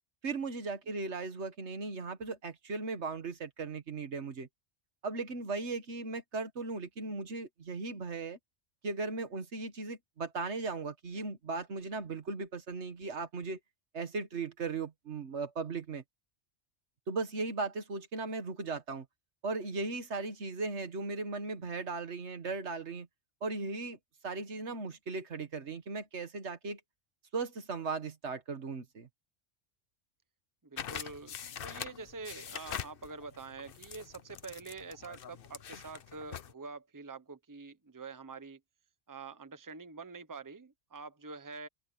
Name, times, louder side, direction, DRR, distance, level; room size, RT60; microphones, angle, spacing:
voice 1, 0.2-4.5 5.0-8.4 8.8-13.6 13.9-16.0 17.1-19.1 19.4-23.1 23.4-24.0 24.2-26.8 27.3-29.1, right 3 dB, 70° right, 1.8 m, -37 dB
voice 2, 30.6-31.3 31.6-38.6 39.1-41.7, right 4 dB, 15° right, 1.0 m, -46 dB
sound 1, 30.8-36.5, left 9 dB, 55° left, 0.9 m, -43 dB
open air
omnidirectional pair, 1.2 m